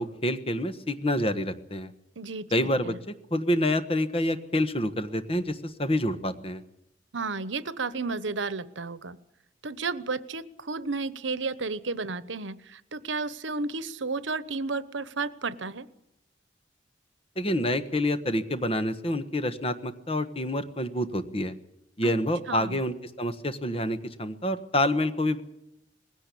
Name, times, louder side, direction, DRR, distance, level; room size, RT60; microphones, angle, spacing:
voice 1, 0.0-1.9 2.5-2.9 3.3-6.6 17.4-21.5 22.0-25.4, left 1 dB, 30° left, 10 dB, 1.3 m, -27 dB
voice 2, 2.2-3.0 7.1-9.2 9.6-15.9 22.0-22.1 22.5-22.8, right 4 dB, 85° right, 16 dB, 1.0 m, -32 dB
20.0 x 16.5 x 8.5 m, 0.83 s
head